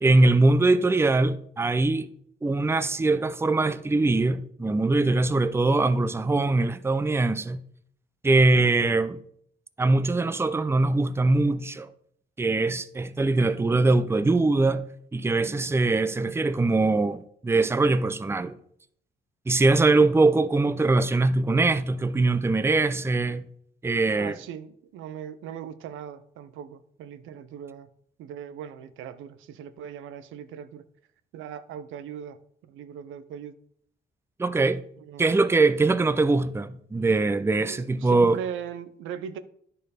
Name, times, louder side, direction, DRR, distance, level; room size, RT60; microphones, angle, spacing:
voice 1, 0.0-2.1 2.4-7.6 8.2-9.2 9.8-11.9 12.4-14.9 15.1-18.5 19.5-23.4 23.8-24.4 34.4-34.8 35.2-38.4, right 3 dB, 10° right, 0.5 m, -22 dB
voice 2, 24.1-27.9 28.2-30.8 31.3-32.4 32.6-33.5 35.0-35.3 37.7-39.4, right 8 dB, 90° right, 0.6 m, -39 dB
10.5 x 4.6 x 4.9 m
cardioid pair, 90°, 20 cm